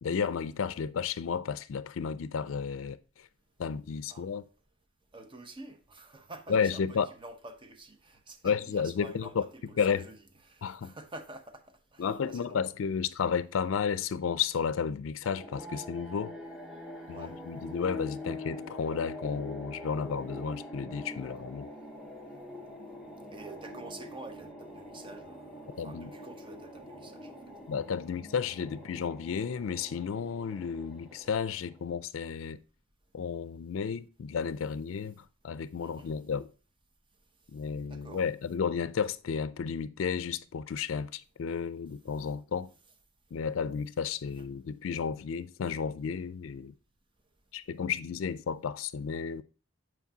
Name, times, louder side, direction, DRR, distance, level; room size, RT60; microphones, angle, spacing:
voice 1, 0.0-3.3 3.6-4.4 6.5-7.1 8.4-9.4 9.8-10.1 10.6-10.9 12.0-16.4 17.1-21.7 25.8-26.1 27.7-32.6 33.1-36.5 37.5-42.7 43.3-46.7 47.5-49.4, left 6 dB, 75° left, 0.4 m, -32 dB
voice 2, 5.1-12.7 17.1-17.4 23.3-27.3 35.8-36.1 37.9-38.2 44.4-44.5, right 2 dB, 25° right, 0.7 m, -48 dB
sound 1, 15.2-31.8, left 1 dB, 5° right, 1.0 m, -44 dB
8.3 x 4.4 x 2.7 m
head